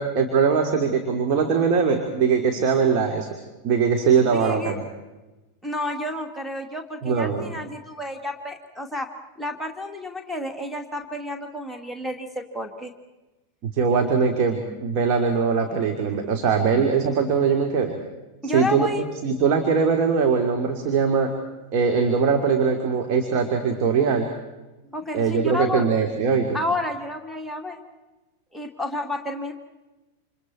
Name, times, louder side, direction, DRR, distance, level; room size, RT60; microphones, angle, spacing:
voice 1, 0.0-3.3 3.6-4.8 7.0-7.5 13.6-17.9 18.4-18.9 19.2-21.3 21.7-24.3 25.1-26.6, right 5 dB, 40° right, 3 dB, 2.9 m, -21 dB
voice 2, 4.3-4.8 5.6-9.1 9.4-12.9 18.4-19.0 24.9-25.8 26.5-27.8 28.5-29.5, left 1 dB, ahead, 6 dB, 2.5 m, -30 dB
29.0 x 27.5 x 4.5 m, 1.1 s
figure-of-eight pair, 90°, 0 cm